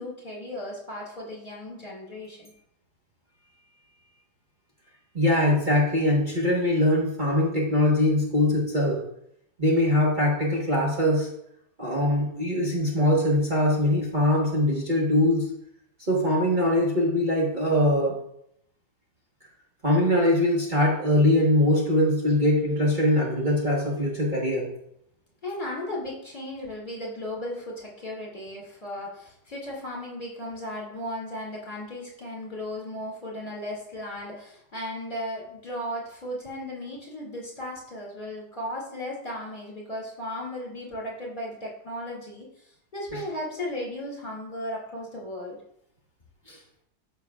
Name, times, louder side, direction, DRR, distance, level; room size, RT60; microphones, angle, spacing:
voice 1, 0.0-2.5 25.4-45.6, left 1 dB, 30° left, -4 dB, 2.6 m, -36 dB
voice 2, 5.1-9.0 9.6-11.3 11.8-15.5 16.0-18.2 19.8-24.7 43.1-43.2 46.5-46.6, left 1 dB, 30° right, -5 dB, 1.4 m, -22 dB
13.5 x 5.8 x 2.4 m, 0.75 s
omnidirectional pair, 1.7 m